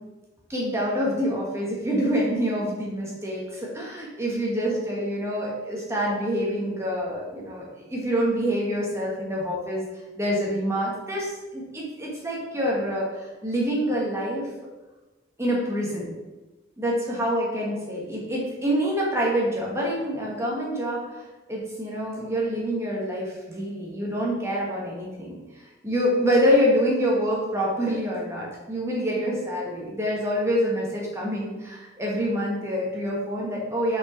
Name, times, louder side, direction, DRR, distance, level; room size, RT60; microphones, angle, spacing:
voice 1, 0.5-9.8 10.2-14.5 15.4-16.1 16.8-34.0, equal, 15° right, -4 dB, 1.5 m, -26 dB
5.6 x 4.7 x 4.4 m, 1.1 s
head